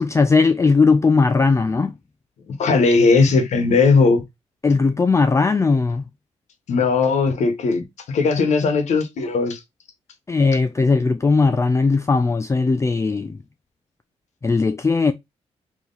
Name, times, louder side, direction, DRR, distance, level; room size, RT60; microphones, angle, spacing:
voice 1, 0.0-1.9 4.6-6.0 10.3-13.4 14.4-15.1, left 4 dB, 25° left, 0.4 m, -18 dB
voice 2, 2.5-4.2 6.7-9.6, left 4 dB, 75° left, 1.2 m, -18 dB
3.6 x 3.1 x 3.9 m
cardioid pair, 70°, 12 cm